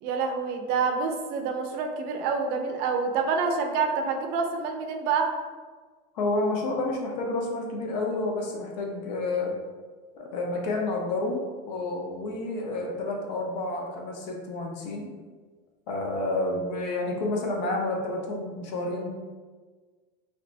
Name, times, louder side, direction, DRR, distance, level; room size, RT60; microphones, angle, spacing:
voice 1, 0.0-5.3, right 5 dB, 50° right, 4 dB, 0.4 m, -27 dB
voice 2, 6.1-9.5 10.2-15.1 15.9-19.1, left 2 dB, 90° left, 0 dB, 0.8 m, -30 dB
2.8 x 2.5 x 3.3 m, 1.4 s
supercardioid pair, 155°, 21 cm